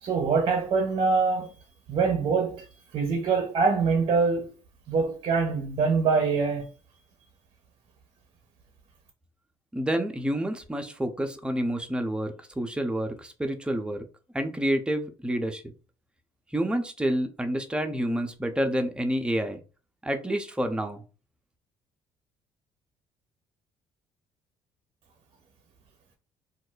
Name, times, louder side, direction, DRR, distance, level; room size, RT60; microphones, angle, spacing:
voice 1, 0.0-1.5 1.9-2.7 2.9-4.5 4.9-6.7, right 4 dB, 50° right, 0.6 m, -24 dB
voice 2, 9.7-14.0 14.3-15.6 16.5-19.6 20.0-21.0, right 1 dB, 10° right, 0.6 m, -28 dB
2.3 x 2.0 x 3.8 m
supercardioid pair, 70°, 12 cm